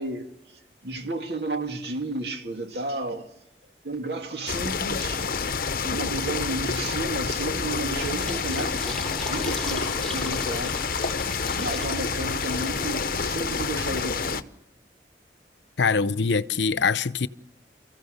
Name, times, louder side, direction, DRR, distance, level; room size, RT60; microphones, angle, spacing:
voice 1, 0.0-3.3 3.8-5.5 5.8-10.7 11.5-14.5, right 2 dB, 70° right, 2.3 m, -33 dB
sound 1, 4.5-14.4, left 5 dB, 50° left, 0.8 m, -28 dB
Fill (with liquid), 7.6-13.3, left 1 dB, 5° left, 1.1 m, -39 dB
voice 2, 15.8-17.3, left 5 dB, 90° left, 0.7 m, -23 dB
29.5 x 15.0 x 6.6 m
head